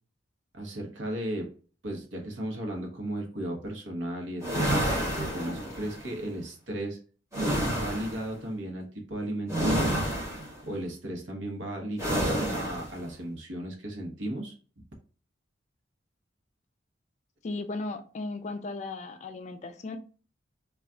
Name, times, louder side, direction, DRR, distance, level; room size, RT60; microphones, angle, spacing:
voice 1, 0.5-1.5 1.8-4.8 5.2-7.0 7.8-10.0 10.7-14.5, right 1 dB, 80° right, 2 dB, 0.9 m, -35 dB
sound 1, 4.4-6.0 7.3-8.3 9.5-10.6 12.0-12.9, right 1 dB, 15° right, 1.0 m, -29 dB
voice 2, 17.4-20.0, left 3 dB, 40° left, 8 dB, 0.3 m, -36 dB
2.3 x 2.2 x 3.6 m, 0.39 s
head